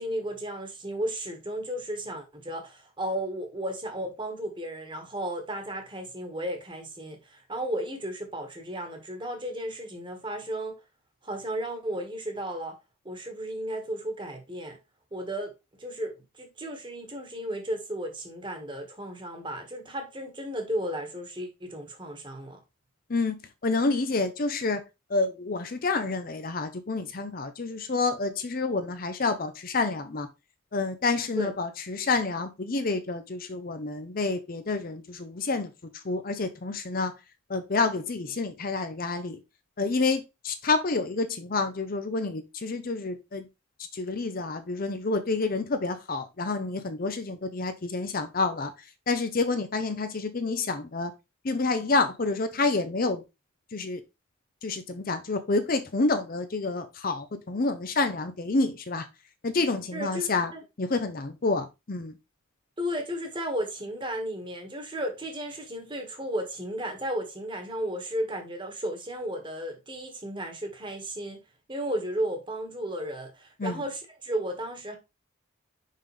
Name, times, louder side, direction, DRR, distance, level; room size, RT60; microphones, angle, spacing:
voice 1, 0.0-10.8 11.2-12.7 13.0-14.8 15.1-15.5 15.8-22.6 31.3-31.5 59.9-60.6 62.8-71.4 71.7-75.0, right 1 dB, 25° right, 1.4 m, -34 dB
voice 2, 23.6-24.8 25.1-30.3 30.7-35.7 36.0-37.1 37.5-39.4 39.8-43.4 43.9-48.7 49.1-51.1 51.4-53.2 53.7-54.0 54.6-59.0 59.4-60.5 60.8-62.1 73.6-73.8, left 3 dB, 45° left, 0.6 m, -28 dB
5.6 x 5.4 x 3.2 m
head